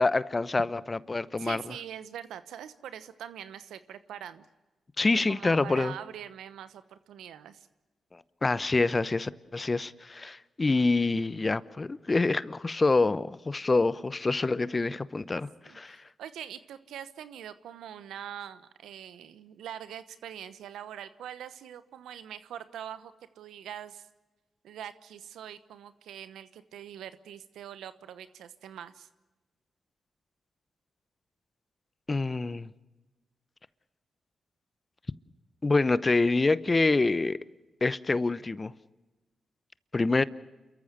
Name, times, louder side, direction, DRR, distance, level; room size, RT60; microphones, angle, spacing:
voice 1, 0.0-1.6 5.0-5.9 8.4-15.5 15.7-16.0 32.1-32.7 35.6-37.4 37.8-38.7 39.9-40.2, left 3 dB, 35° left, 0.9 m, -26 dB
voice 2, 1.4-4.5 5.3-7.7 15.6-15.8 16.2-24.1 24.6-29.1, right 10 dB, 90° right, 1.0 m, -43 dB
29.0 x 14.0 x 8.1 m
supercardioid pair, 50°, 0 cm